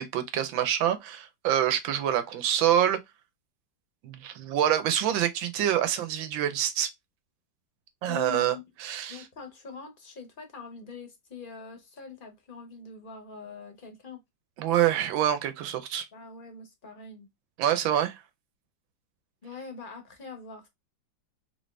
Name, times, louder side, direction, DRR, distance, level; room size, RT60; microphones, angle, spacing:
voice 1, 0.0-3.0 4.0-6.9 8.0-9.2 14.6-16.1 17.6-18.2, right 11 dB, 85° right, 1.5 m, -26 dB
voice 2, 8.1-8.6 9.1-14.2 16.1-17.3 19.4-20.7, left 5 dB, 40° left, 0.8 m, -43 dB
3.7 x 2.6 x 3.2 m
omnidirectional pair, 2.1 m